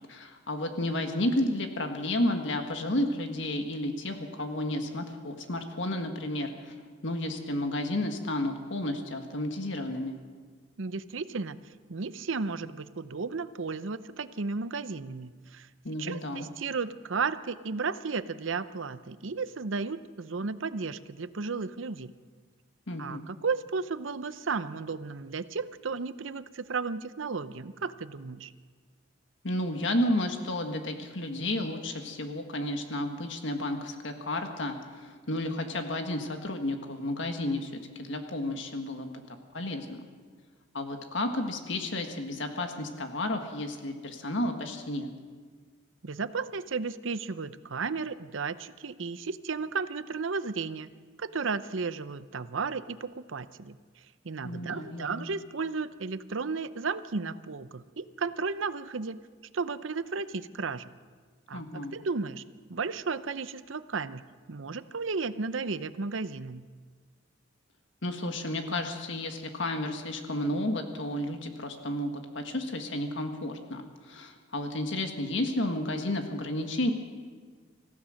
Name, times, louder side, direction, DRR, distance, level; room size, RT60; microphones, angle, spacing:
voice 1, 0.1-6.7 7.0-10.2 15.8-16.5 22.9-23.2 29.4-40.0 40.7-45.1 54.4-55.3 61.5-61.9 68.0-76.9, left 1 dB, 70° left, 5 dB, 1.7 m, -32 dB
voice 2, 10.8-11.6 11.9-15.7 16.0-22.1 23.0-28.5 46.0-50.9 51.2-53.8 54.2-59.2 59.5-60.9 61.5-62.4 62.7-64.2 64.5-66.7, right 4 dB, 80° right, 14 dB, 0.7 m, -34 dB
26.0 x 15.5 x 6.5 m, 1.5 s
head